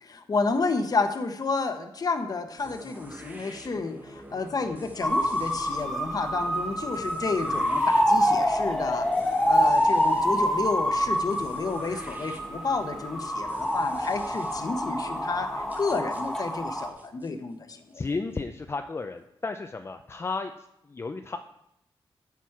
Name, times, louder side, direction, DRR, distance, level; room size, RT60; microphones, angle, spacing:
voice 1, 0.0-9.1 9.5-18.0, left 4 dB, 45° left, 7 dB, 0.8 m, -30 dB
sound 1, 2.6-18.4, right 1 dB, 20° right, 1.0 m, -47 dB
sound 2, 5.0-16.9, equal, 5° left, 1.2 m, -26 dB
voice 2, 17.9-20.5 20.9-21.4, left 3 dB, 25° left, 6 dB, 0.4 m, -33 dB
13.0 x 5.9 x 4.7 m, 0.83 s
wide cardioid pair, 135°, 9 cm